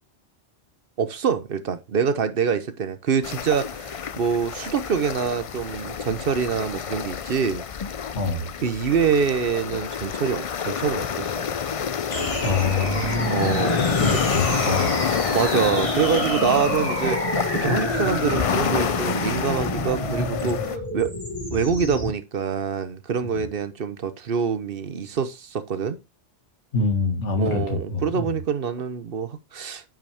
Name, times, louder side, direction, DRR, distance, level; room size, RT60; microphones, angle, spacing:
voice 1, 1.0-7.6 8.6-11.5 13.3-14.2 15.3-21.1 21.5-26.0 27.4-29.8, right 6 dB, 55° right, 1.0 m, -25 dB
sound 1, 3.2-20.8, left 7 dB, 50° left, 0.4 m, -28 dB
voice 2, 8.1-8.5 12.4-13.6 14.0-15.0 23.3-23.4 26.7-28.3, left 3 dB, 85° left, 2.2 m, -25 dB
sound 2, 12.1-22.1, left 1 dB, 30° left, 2.5 m, -28 dB
8.9 x 5.9 x 3.5 m
omnidirectional pair, 1.2 m